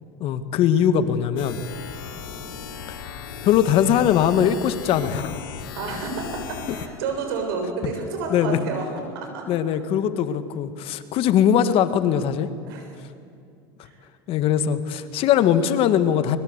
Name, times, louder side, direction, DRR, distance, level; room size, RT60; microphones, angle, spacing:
voice 1, 0.2-1.6 3.4-5.4 8.3-8.6 9.5-12.5 14.3-16.4, left 9 dB, 55° left, 11 dB, 1.7 m, -21 dB
sound 1, 1.4-6.9, left 7 dB, 90° left, 2.7 m, -37 dB
voice 2, 5.7-8.9 9.1-9.8 12.6-12.9 13.8-14.0, right 4 dB, 80° right, 3 dB, 7.1 m, -30 dB
24.0 x 21.5 x 8.2 m, 2.4 s
supercardioid pair, 105°, 12 cm